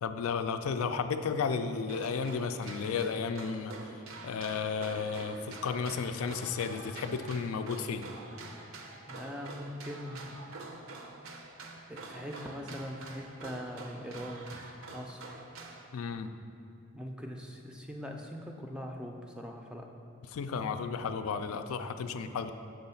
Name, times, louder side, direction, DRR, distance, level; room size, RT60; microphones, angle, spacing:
voice 1, 0.0-3.7 4.2-8.2 15.9-16.3 20.3-22.5, left 5 dB, 85° left, 8 dB, 0.4 m, -33 dB
sound 1, 1.8-15.9, right 3 dB, 70° right, 0.6 m, -46 dB
voice 2, 9.1-10.4 11.9-14.6 14.9-15.4 16.9-19.9, equal, 5° right, 1 dB, 0.3 m, -41 dB
6.8 x 3.9 x 5.6 m, 2.6 s
head